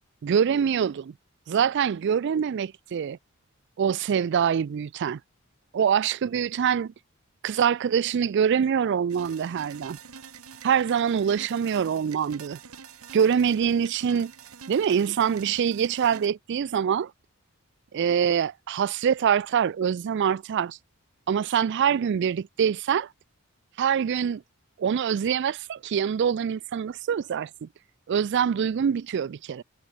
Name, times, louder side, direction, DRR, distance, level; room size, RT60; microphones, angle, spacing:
voice 1, 0.2-1.1 1.5-3.2 3.8-5.2 5.7-6.9 7.4-10.0 10.6-12.6 13.1-14.3 14.7-17.1 17.9-20.8 21.3-23.1 23.8-24.4 24.8-27.7 28.1-29.6, right 7 dB, 55° right, 0.3 m, -24 dB
sound 1, 9.1-16.3, right 7 dB, 85° right, 1.4 m, -46 dB
head